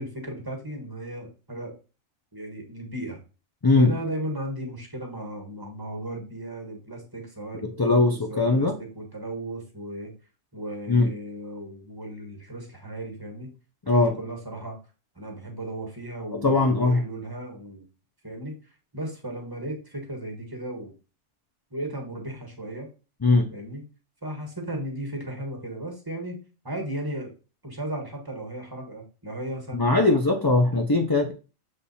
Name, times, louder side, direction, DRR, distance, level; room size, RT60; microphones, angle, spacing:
voice 1, 0.0-1.7 2.3-3.2 3.7-10.1 10.5-13.5 13.8-14.8 15.1-17.8 18.2-18.6 18.9-20.9 21.7-22.9 23.5-23.8 24.2-26.4 26.6-27.3 27.6-30.1 30.6-30.8, right 1 dB, 15° right, 3 dB, 1.4 m, -35 dB
voice 2, 7.8-8.8 10.9-11.1 13.9-14.1 16.3-17.0 23.2-23.5 29.7-31.3, left 3 dB, 25° left, 4 dB, 0.4 m, -20 dB
7.1 x 3.4 x 4.2 m, 0.33 s
omnidirectional pair, 1.4 m